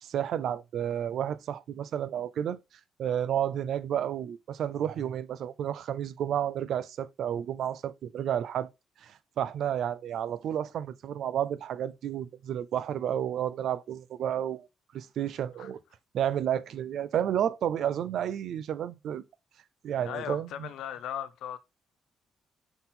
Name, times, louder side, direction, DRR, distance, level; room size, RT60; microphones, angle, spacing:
voice 1, 0.0-2.6 3.0-8.7 9.0-14.7 14.9-15.8 16.1-19.2 19.8-20.7, right 10 dB, 70° right, 0.5 m, -31 dB
voice 2, 20.0-21.6, left 10 dB, 80° left, 0.6 m, -37 dB
5.7 x 3.8 x 4.4 m
cardioid pair, 90°, 0 cm